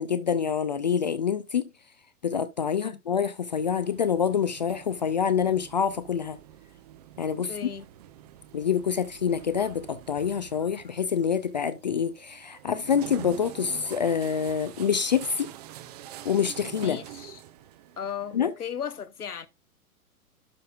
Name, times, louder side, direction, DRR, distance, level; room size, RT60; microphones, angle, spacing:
voice 1, 0.0-1.7 2.2-6.4 7.2-7.5 8.5-15.5 16.2-17.0 18.3-18.5, left 7 dB, 35° left, 0.4 m, -26 dB
sound 1, 3.5-18.5, right 12 dB, 25° right, 0.6 m, -46 dB
voice 2, 7.4-7.9 16.8-17.4 18.0-19.5, left 8 dB, 80° left, 1.0 m, -36 dB
11.5 x 5.5 x 2.3 m
figure-of-eight pair, 115°, 45 cm